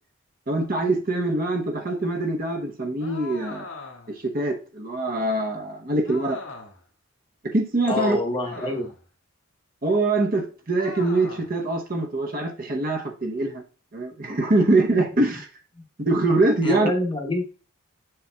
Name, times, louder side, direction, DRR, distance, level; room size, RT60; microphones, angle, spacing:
voice 1, 0.5-3.7 4.1-6.4 7.4-8.2 9.8-13.6 13.9-15.5 16.1-16.9, right 2 dB, 40° right, 0.8 m, -23 dB
sound 1, 3.0-4.2 6.0-6.9 8.4-9.1 10.8-11.6, left 3 dB, 65° left, 1.5 m, -40 dB
voice 2, 7.9-8.9 15.1-15.2 15.7-15.8 16.6-17.4, left 2 dB, 25° left, 0.9 m, -27 dB
7.0 x 6.6 x 2.2 m
head